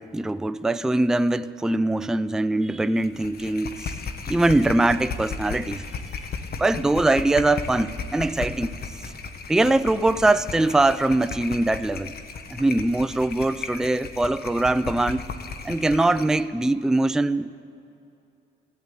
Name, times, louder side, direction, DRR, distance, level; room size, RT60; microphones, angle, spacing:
voice 1, 0.0-4.0 4.3-5.8 6.6-8.7 9.5-12.1 12.5-15.2 15.6-17.6, right 2 dB, 5° right, 0.3 m, -22 dB
sound 1, 3.0-16.4, left 5 dB, 50° left, 1.2 m, -35 dB
15.5 x 8.5 x 9.0 m
cardioid pair, 90°, 20 cm